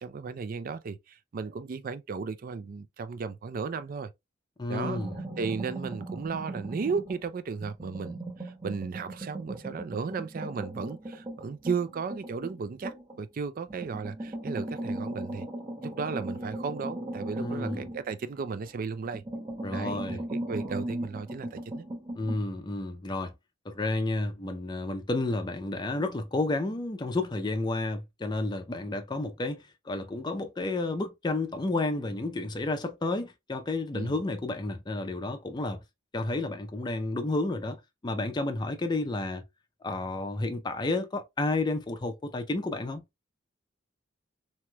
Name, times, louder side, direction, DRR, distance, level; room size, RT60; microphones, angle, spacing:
voice 1, 0.0-4.1 4.7-5.0 5.4-15.5 15.8-19.2 19.7-21.9 33.9-34.2, right 5 dB, 45° right, 0.4 m, -35 dB
voice 2, 4.6-5.1 17.4-17.9 19.6-20.2 22.1-23.3 23.7-35.8 36.1-39.4 39.8-43.0, left 2 dB, 20° left, 0.4 m, -31 dB
sound 1, 4.8-7.3 7.6-13.2 13.7-18.7 19.1-22.4, right 1 dB, 25° right, 0.8 m, -38 dB
3.1 x 2.9 x 2.2 m
head